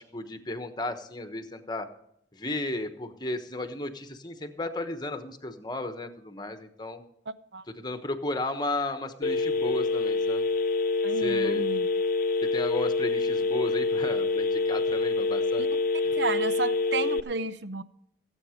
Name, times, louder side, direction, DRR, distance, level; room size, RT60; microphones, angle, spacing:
voice 1, 0.0-1.9 2.3-7.0 7.7-10.5 11.2-11.6 12.5-15.6 16.0-16.1, left 2 dB, 25° left, 1.1 m, -34 dB
Telephone, 9.2-17.2, left 3 dB, 50° left, 0.5 m, -26 dB
voice 2, 11.0-11.9 15.6-15.7 16.2-17.8, right 4 dB, 75° right, 0.7 m, -32 dB
16.0 x 8.5 x 5.1 m
head